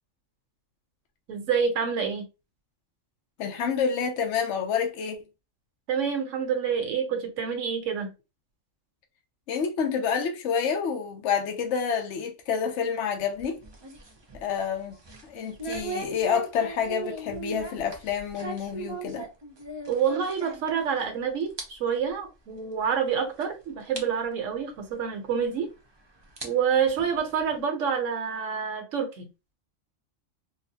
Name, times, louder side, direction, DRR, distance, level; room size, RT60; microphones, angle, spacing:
voice 1, 1.3-2.3 5.9-8.1 19.9-25.7 26.4-29.3, right 7 dB, 75° right, 1.1 m, -27 dB
voice 2, 3.4-5.2 9.5-13.6 14.3-15.0 15.2-19.3, left 7 dB, 70° left, 1.0 m, -28 dB
sound 1, 13.2-21.1 21.4-21.6 22.0-22.1 22.8-22.9 23.4-23.5 24.0-24.1 25.4-25.5 26.2-27.6, right 3 dB, 30° right, 0.5 m, -39 dB
3.8 x 2.0 x 2.7 m
omnidirectional pair, 1.3 m